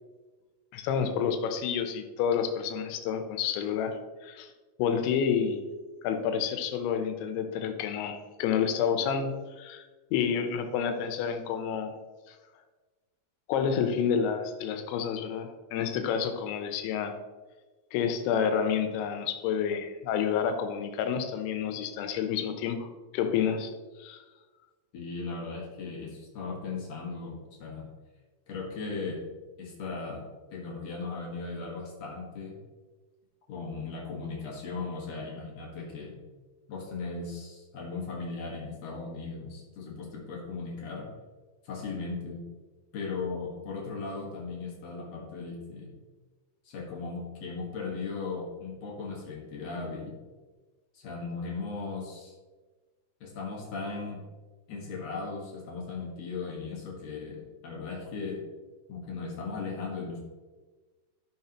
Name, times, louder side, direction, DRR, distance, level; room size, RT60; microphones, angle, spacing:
voice 1, 0.7-4.5 4.8-5.6 6.0-9.8 10.1-11.9 13.5-17.2 17.9-22.9 23.1-23.7 24.0-24.2, left 7 dB, 85° left, 7 dB, 3.1 m, -29 dB
voice 2, 24.9-27.9 28.5-29.2 29.6-30.2 30.5-32.5 33.5-36.2 36.7-41.1 41.6-42.4 42.9-45.9 46.6-50.1 50.9-52.3 53.2-54.2 54.7-58.4 58.9-60.2, left 4 dB, 60° left, -2 dB, 1.7 m, -37 dB
12.0 x 6.5 x 2.9 m, 1.3 s
omnidirectional pair, 5.2 m